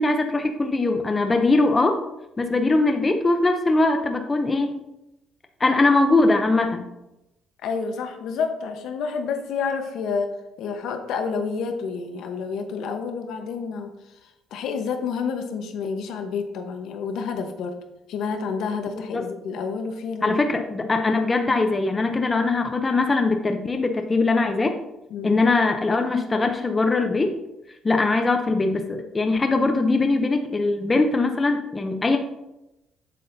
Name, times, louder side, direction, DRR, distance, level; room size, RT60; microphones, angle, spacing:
voice 1, 0.0-2.0 2.4-4.8 5.6-6.8 19.1-19.3 20.2-24.8 25.2-27.3 27.8-32.2, left 3 dB, 15° left, 5 dB, 0.5 m, -21 dB
voice 2, 7.6-10.3 10.6-13.9 14.5-17.8 18.1-20.4 25.1-25.4, left 5 dB, 70° left, 6 dB, 0.9 m, -29 dB
7.7 x 7.5 x 2.6 m, 0.92 s
cardioid pair, 155°, 0 cm